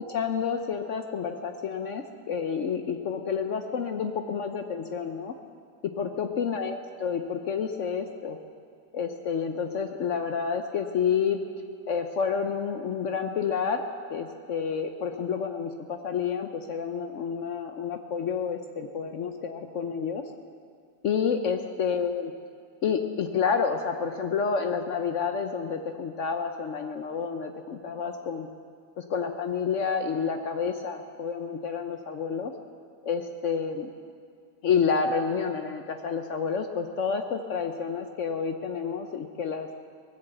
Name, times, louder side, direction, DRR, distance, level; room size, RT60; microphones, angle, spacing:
voice 1, 0.1-5.4 6.0-8.4 8.9-11.4 11.9-13.8 14.1-20.2 21.0-22.3 22.8-28.5 29.0-32.5 33.0-33.9 34.6-39.7, left 6 dB, 60° left, 6 dB, 0.8 m, -29 dB
19.5 x 7.2 x 7.9 m, 2.2 s
omnidirectional pair, 1.8 m